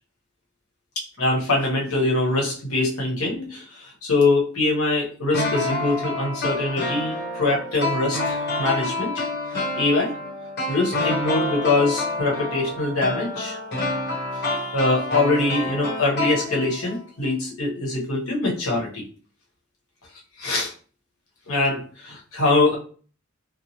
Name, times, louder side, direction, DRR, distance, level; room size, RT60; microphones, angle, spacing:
voice 1, 1.0-10.1 10.7-13.6 14.4-19.0 20.4-20.7 21.5-22.8, left 2 dB, 90° left, -2 dB, 1.1 m, -23 dB
sound 1, 5.3-17.0 17.2-17.3, left 2 dB, 50° left, 1.0 m, -28 dB
2.9 x 2.1 x 2.8 m, 0.40 s
head